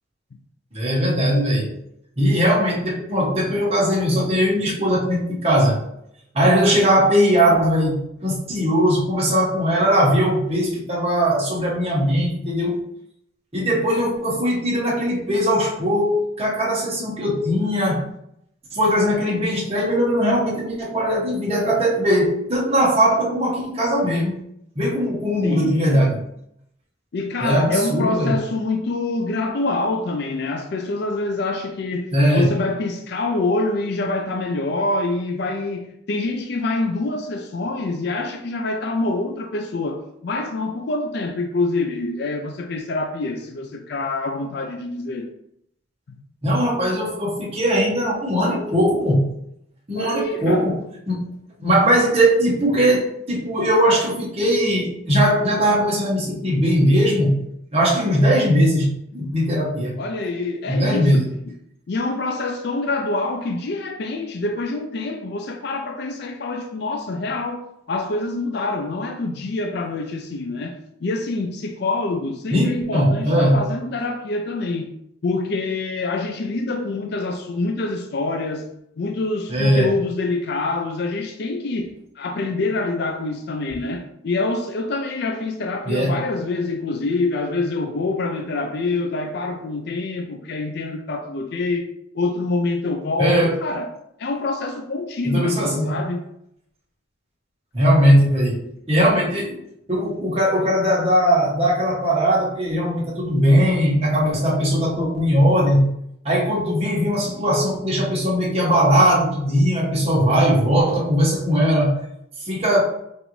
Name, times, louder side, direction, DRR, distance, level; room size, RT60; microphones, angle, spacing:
voice 1, 0.7-1.7 2.2-5.8 6.3-12.8 13.5-18.0 18.7-24.4 24.7-26.2 27.4-28.3 32.1-32.5 46.4-49.3 49.9-50.8 51.1-51.3 51.6-57.4 57.7-60.0 60.7-61.3 72.5-73.7 79.5-79.9 85.9-86.2 93.2-93.6 95.2-96.1 97.7-99.6 99.9-105.9 106.2-112.0 112.4-112.8, equal, 35° right, 1.2 m, -19 dB
voice 2, 25.4-26.0 27.1-45.3 46.1-46.2 50.0-50.7 60.0-61.3 61.9-74.9 75.2-78.7 79.0-81.9 82.2-91.9 92.1-93.9 94.2-96.2, left 2 dB, 60° left, 0.4 m, -26 dB
5.2 x 2.6 x 3.1 m
head